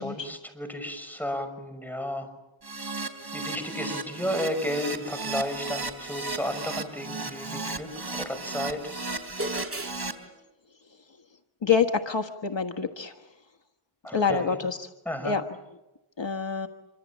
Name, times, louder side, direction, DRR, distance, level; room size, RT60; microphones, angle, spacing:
voice 1, 0.0-2.3 3.3-8.9 14.0-14.6 15.0-15.4, equal, 5° left, 7 dB, 6.1 m, -33 dB
Keyboard (musical), 2.6-10.1, right 3 dB, 50° right, 3.5 m, -35 dB
sound 1, 9.4-10.0, right 1 dB, 25° right, 2.7 m, -33 dB
voice 2, 11.6-13.2 14.1-14.9 15.2-15.4 16.2-16.7, left 6 dB, 60° left, 5 dB, 1.5 m, -26 dB
27.0 x 25.0 x 7.3 m, 0.99 s
wide cardioid pair, 50°, 50 cm